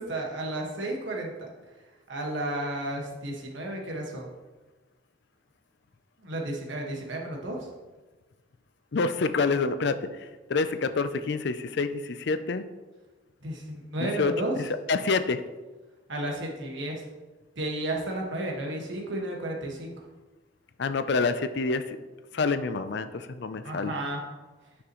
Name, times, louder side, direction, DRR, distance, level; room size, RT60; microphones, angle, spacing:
voice 1, 0.0-1.5 2.1-4.3 6.2-7.7 13.4-14.5 16.1-17.0 17.6-19.9 23.6-24.2, right 1 dB, 65° right, 0 dB, 1.5 m, -32 dB
voice 2, 8.9-12.6 14.0-15.4 20.8-22.0 22.3-23.9, left 4 dB, 55° left, 11 dB, 0.4 m, -27 dB
9.5 x 6.1 x 3.0 m, 1.2 s
head